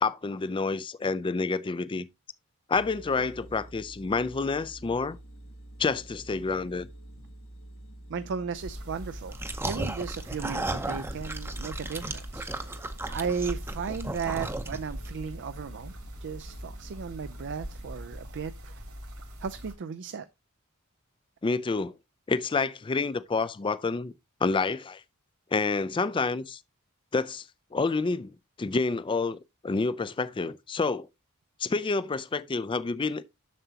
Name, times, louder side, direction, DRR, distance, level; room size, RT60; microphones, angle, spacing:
voice 1, 0.0-2.1 2.7-5.2 5.8-6.9 21.4-21.9 22.3-24.1 24.4-25.0 25.5-26.6 27.1-27.5 27.7-28.3 28.6-29.4 29.6-31.1 31.6-33.2, left 4 dB, 20° left, 0.4 m, -28 dB
sound 1, 2.7-18.2, right 1 dB, 70° left, 1.1 m, -48 dB
voice 2, 8.1-9.3 9.6-15.9 16.2-18.8 19.4-20.3, right 6 dB, 55° right, 0.4 m, -35 dB
sound 2, 8.6-19.7, equal, 70° right, 2.5 m, -41 dB
sound 3, 9.3-15.1, right 2 dB, 10° right, 0.7 m, -35 dB
7.5 x 6.8 x 2.8 m
head